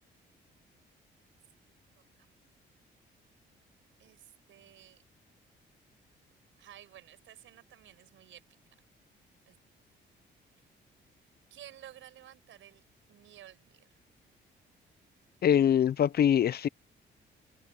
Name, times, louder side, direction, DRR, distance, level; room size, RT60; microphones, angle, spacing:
voice 1, 2.0-2.3 4.0-5.0 6.6-8.4 9.5-9.6 11.5-12.8 13.1-13.9, right 12 dB, 75° right, 6.4 m, -53 dB
voice 2, 15.4-16.7, left 9 dB, 50° left, 0.6 m, -23 dB
cardioid pair, 90°, 20 cm